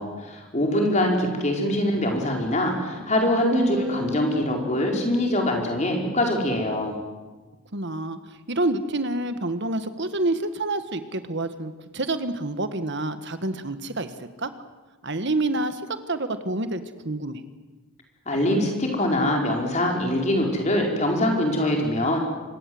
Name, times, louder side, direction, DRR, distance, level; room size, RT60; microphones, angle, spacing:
voice 1, 0.0-7.0 18.3-22.2, left 1 dB, 30° left, 1 dB, 4.6 m, -23 dB
sound 1, 3.5-5.9, equal, 35° right, 2.9 m, -31 dB
voice 2, 7.7-8.2 8.5-14.5 15.0-15.8 16.1-17.4, right 2 dB, 50° right, 10 dB, 1.6 m, -28 dB
25.5 x 21.5 x 7.9 m, 1.3 s
head